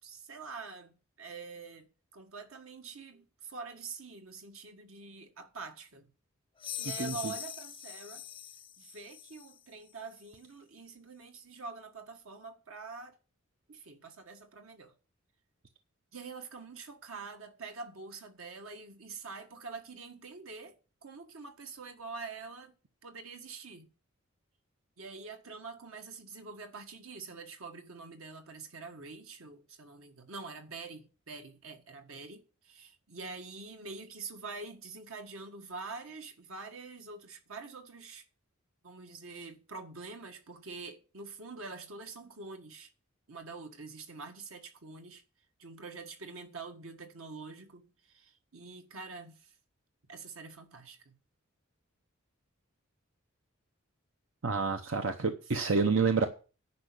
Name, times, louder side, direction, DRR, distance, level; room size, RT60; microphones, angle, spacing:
voice 1, 0.0-1.9 2.1-6.1 6.8-8.2 8.8-13.2 13.7-14.9 16.1-20.7 21.0-22.7 23.0-23.9 25.0-38.2 38.8-42.9 43.3-45.2 45.6-49.5 50.1-51.2, right 4 dB, 85° right, 1.7 m, -45 dB
sound 1, 6.6-9.6, left 10 dB, 25° left, 0.5 m, -42 dB
voice 2, 7.0-7.3 54.4-56.3, right 4 dB, 70° right, 0.9 m, -28 dB
10.5 x 5.7 x 8.4 m
head